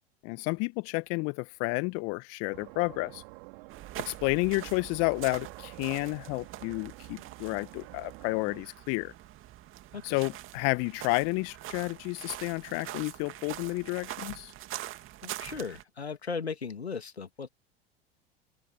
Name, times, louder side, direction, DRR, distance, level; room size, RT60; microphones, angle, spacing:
voice 1, 0.2-3.2 4.0-9.1 10.0-14.5, left 29 dB, 50° left, 1.3 m, -31 dB
sound 1, 2.5-8.6, right 29 dB, 60° right, 5.0 m, -49 dB
sound 2, 3.7-15.8, right 14 dB, 40° right, 2.5 m, -44 dB
voice 2, 15.2-17.5, left 5 dB, 85° left, 2.4 m, -37 dB
open air
figure-of-eight pair, 80°, 31 cm